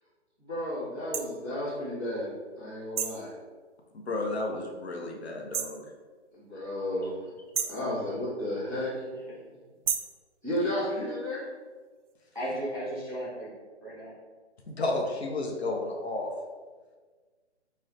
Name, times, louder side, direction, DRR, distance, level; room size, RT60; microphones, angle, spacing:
voice 1, 0.4-2.3 2.6-3.3 6.3-7.1 7.7-8.9 10.4-11.4, left 1 dB, 5° left, -17 dB, 0.9 m, -32 dB
sound 1, 1.1-1.3 3.0-3.3 5.5-5.8 7.5-7.9 9.9-10.2, right 7 dB, 90° right, 0.5 m, -31 dB
voice 2, 3.9-5.8 10.6-10.7 14.7-16.3, left 2 dB, 65° left, 0 dB, 0.7 m, -32 dB
voice 3, 12.3-13.5 13.8-14.1, right 1 dB, 25° right, -8 dB, 0.5 m, -35 dB
5.5 x 2.1 x 2.4 m, 1.4 s
hypercardioid pair, 175°, 35 cm